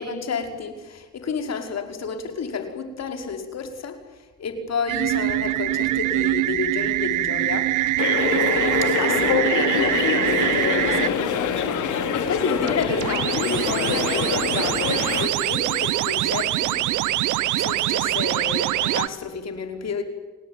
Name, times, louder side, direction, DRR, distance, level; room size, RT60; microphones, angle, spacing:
voice 1, 0.0-7.7 8.8-11.2 11.6-16.9 17.6-20.0, left 5 dB, 60° left, 6 dB, 5.3 m, -30 dB
sound 1, 4.9-11.1 12.6-19.1, right 15 dB, 80° right, 1.0 m, -24 dB
sound 2, 8.0-15.3, left 7 dB, 75° left, 3.7 m, -25 dB
29.5 x 19.5 x 9.5 m, 1.3 s
cardioid pair, 90°, 30 cm